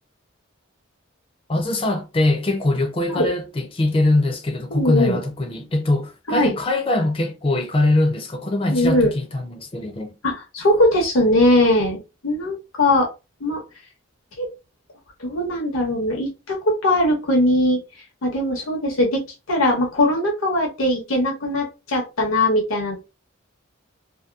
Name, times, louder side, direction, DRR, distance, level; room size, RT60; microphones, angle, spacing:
voice 1, 1.5-10.1, left 2 dB, 25° left, 0.4 m, -22 dB
voice 2, 4.7-5.2 6.3-6.5 8.7-9.1 10.2-13.1 13.4-13.6 14.4-14.5 15.2-17.8 18.2-19.2 19.5-23.0, left 1 dB, 85° left, 0.9 m, -20 dB
2.8 x 2.2 x 2.3 m
head